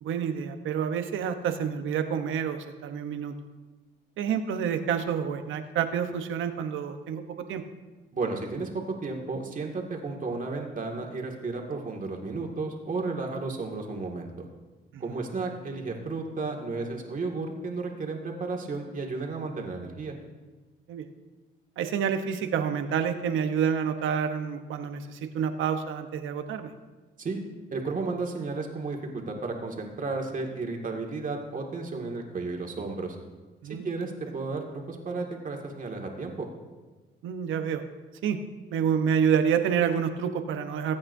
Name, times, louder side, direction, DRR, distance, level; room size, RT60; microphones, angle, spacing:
voice 1, 0.0-3.3 4.2-7.2 7.5-7.6 14.9-15.1 20.9-21.1 21.8-26.7 33.6-34.0 37.2-37.8 38.2-38.4 38.7-41.0, right 7 dB, 80° right, 8 dB, 1.0 m, -28 dB
voice 2, 8.1-14.5 15.0-20.1 27.2-27.4 27.7-33.2 33.6-36.5, right 3 dB, 40° right, 1 dB, 2.0 m, -33 dB
20.5 x 8.7 x 2.7 m, 1.3 s
cardioid pair, 90°, 20 cm